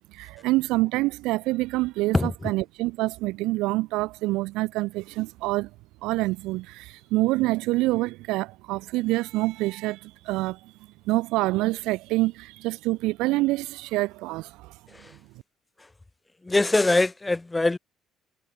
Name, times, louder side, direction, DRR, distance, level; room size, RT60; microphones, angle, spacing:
voice 1, 0.1-5.7 6.0-10.7 11.1-14.7, right 20 dB, 90° right, 0.7 m, -26 dB
voice 2, 2.1-2.5 14.9-15.1 16.4-17.8, left 2 dB, 10° left, 1.5 m, -23 dB
cardioid pair, 135°, 0 cm